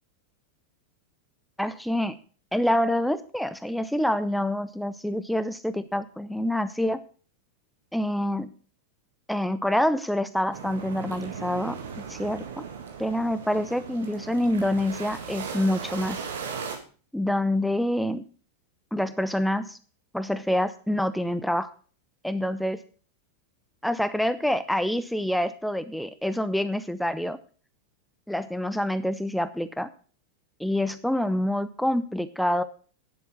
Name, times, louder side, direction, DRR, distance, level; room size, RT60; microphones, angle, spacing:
voice 1, 1.6-2.2 2.5-7.0 7.9-8.5 9.3-12.6 13.0-16.2 17.1-18.2 18.9-19.8 20.1-21.7 22.2-22.8 23.8-27.4 28.3-29.9 30.6-32.6, left 1 dB, ahead, 13 dB, 0.6 m, -26 dB
sound 1, 10.5-16.8, right 6 dB, 60° right, 2.1 m, -37 dB
10.0 x 7.7 x 6.2 m, 0.39 s
figure-of-eight pair, 90°, 0 cm